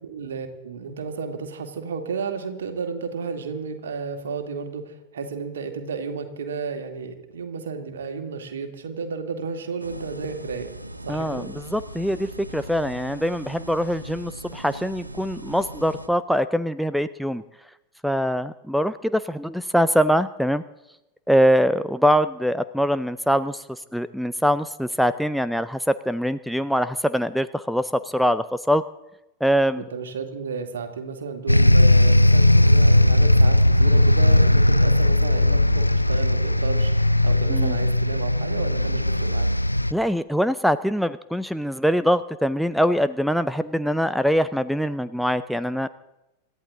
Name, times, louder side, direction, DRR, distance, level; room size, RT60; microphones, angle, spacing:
voice 1, 0.0-10.7 11.1-11.5 29.8-39.5, right 5 dB, 65° right, 6 dB, 2.3 m, -32 dB
sound 1, 9.8-16.1, right 1 dB, 85° right, 1.0 m, -39 dB
voice 2, 11.1-17.4 18.0-20.6 21.3-28.8 29.4-29.8 37.5-37.8 39.9-45.9, equal, ahead, 14 dB, 0.5 m, -23 dB
sound 2, 31.5-39.9, left 1 dB, 85° left, 0.4 m, -17 dB
27.0 x 13.5 x 3.8 m, 0.94 s
figure-of-eight pair, 90°, 0 cm